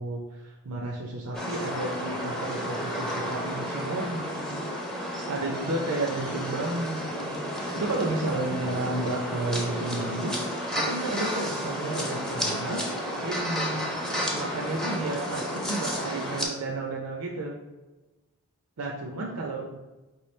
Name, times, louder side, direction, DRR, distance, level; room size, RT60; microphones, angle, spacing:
voice 1, 0.0-4.7 4.9-17.5 18.8-19.8, right 2 dB, 85° right, 0 dB, 0.6 m, -32 dB
sound 1, 1.3-16.5, equal, 5° left, 0.5 m, -32 dB
4.6 x 3.1 x 3.2 m, 1.1 s
head